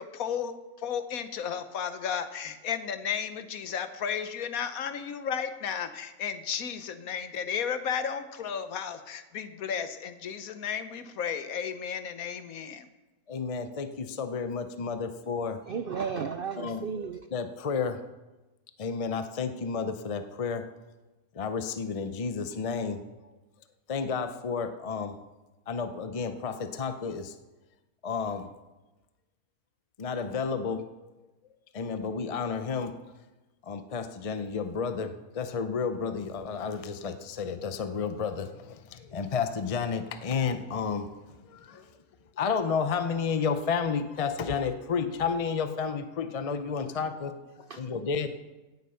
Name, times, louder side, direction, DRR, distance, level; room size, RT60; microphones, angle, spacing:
voice 1, 0.0-12.9 41.7-41.9, left 7 dB, 70° left, 1.3 m, -34 dB
voice 2, 13.3-15.6 16.6-16.8 17.3-18.0 18.8-20.7 21.3-23.0 23.9-25.2 25.7-27.3 28.0-28.5 30.0-31.1 31.7-33.0 33.6-41.2 41.5-41.8 42.4-48.3, left 5 dB, 50° left, 0.4 m, -31 dB
voice 3, 15.7-17.2 47.7-47.8, right 6 dB, 65° right, 0.5 m, -33 dB
17.0 x 8.0 x 5.6 m
omnidirectional pair, 1.6 m